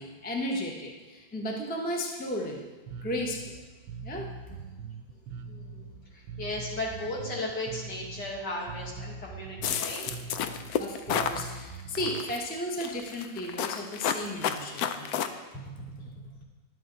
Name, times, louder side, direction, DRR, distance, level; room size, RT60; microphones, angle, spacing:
voice 1, 0.0-2.7 3.0-3.6 4.0-4.6 10.8-15.3, equal, 10° left, -1 dB, 0.6 m, -34 dB
Bass guitar, 2.9-12.3, right 4 dB, 75° right, 1.4 m, -42 dB
voice 2, 5.5-10.1, left 1 dB, 60° left, -3 dB, 2.4 m, -36 dB
sound 1, 9.6-11.4 12.0-12.4 12.8-15.3, left 9 dB, 85° left, 0.8 m, -30 dB
11.5 x 7.7 x 3.9 m, 1.3 s
omnidirectional pair, 2.1 m